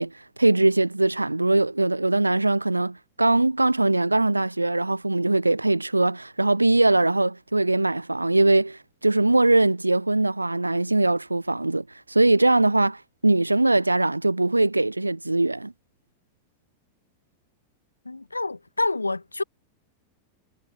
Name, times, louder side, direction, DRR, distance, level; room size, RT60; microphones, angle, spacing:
voice 1, 0.0-15.7, right 2 dB, 85° right, 0.6 m, -21 dB
voice 2, 18.0-19.4, left 3 dB, 80° left, 1.3 m, -27 dB
figure-of-eight pair, 90°, 0 cm